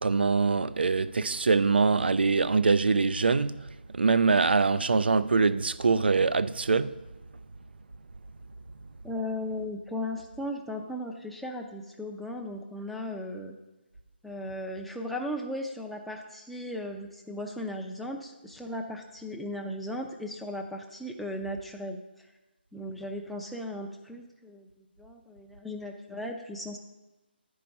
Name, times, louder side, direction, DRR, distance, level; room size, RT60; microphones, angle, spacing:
voice 1, 0.0-6.9, right 4 dB, 65° right, 0.4 m, -24 dB
voice 2, 9.0-13.6 14.2-22.3 22.7-26.8, left 1 dB, ahead, 0.5 m, -37 dB
11.0 x 4.7 x 5.2 m
figure-of-eight pair, 145°, 6 cm